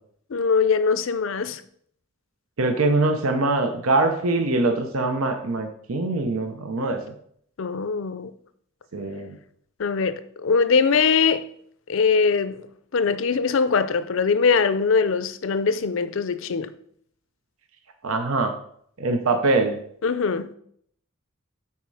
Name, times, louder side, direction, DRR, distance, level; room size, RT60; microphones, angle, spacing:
voice 1, 0.3-1.6 7.6-8.3 9.8-11.5 11.9-12.7 12.9-16.7 20.0-20.5, left 5 dB, 65° left, 0.5 m, -22 dB
voice 2, 2.6-7.0 8.9-9.4 18.0-18.5 19.0-19.8, right 2 dB, 90° right, 0.8 m, -23 dB
9.3 x 4.3 x 4.8 m
head